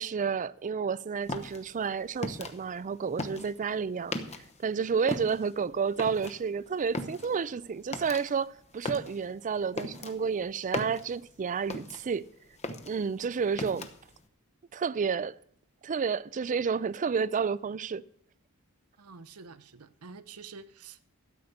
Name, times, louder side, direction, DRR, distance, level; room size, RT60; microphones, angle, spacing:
voice 1, 0.0-4.2 4.6-12.3 12.9-13.9 14.7-15.4 15.8-18.0, right 6 dB, 35° right, 0.4 m, -30 dB
sound 1, 1.2-4.7 5.0-12.3 12.5-14.2, left 2 dB, 30° left, 1.0 m, -38 dB
voice 2, 19.0-21.0, right 5 dB, 80° right, 0.8 m, -48 dB
13.0 x 8.5 x 6.5 m
head